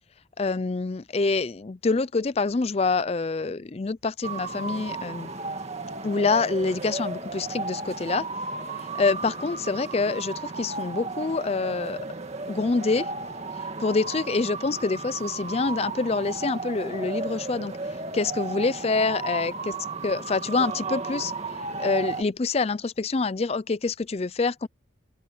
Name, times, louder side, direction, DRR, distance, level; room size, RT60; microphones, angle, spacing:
voice 1, 0.4-5.3 6.0-8.3 8.9-12.0 12.5-13.1 13.8-17.8 18.1-19.8 20.0-21.3 21.8-24.7, left 3 dB, 30° left, 0.4 m, -26 dB
sound 1, 4.2-22.2, right 3 dB, 35° right, 2.1 m, -34 dB
head